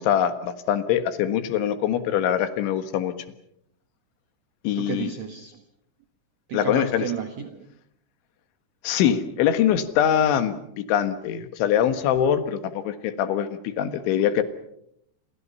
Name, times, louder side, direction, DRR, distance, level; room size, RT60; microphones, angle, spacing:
voice 1, 0.0-3.1 4.6-5.1 6.5-7.1 8.8-14.4, left 9 dB, 70° left, 10 dB, 3.8 m, -23 dB
voice 2, 4.7-5.6 6.5-7.7, right 7 dB, 85° right, 6 dB, 1.5 m, -32 dB
28.5 x 28.0 x 5.6 m, 0.74 s
omnidirectional pair, 5.7 m